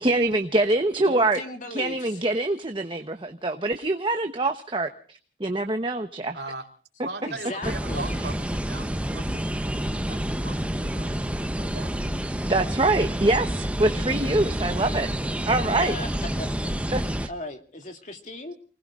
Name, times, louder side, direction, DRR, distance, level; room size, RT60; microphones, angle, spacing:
voice 1, 0.0-1.4 1.7-4.9 5.4-6.4 12.5-15.1 15.5-16.0 16.9-17.3, right 2 dB, 30° right, 6 dB, 1.0 m, -24 dB
voice 2, 1.0-2.2 7.3-8.1 15.4-15.5 15.8-16.1 16.4-18.5, left 2 dB, 45° left, 4 dB, 2.6 m, -37 dB
voice 3, 6.3-6.6 7.0-11.2 11.5-12.0 12.9-13.1 14.6-15.4, right 3 dB, 70° right, 2 dB, 3.2 m, -40 dB
sound 1, 7.6-17.3, equal, 5° right, 0.7 m, -28 dB
29.0 x 20.0 x 2.5 m, 0.43 s
head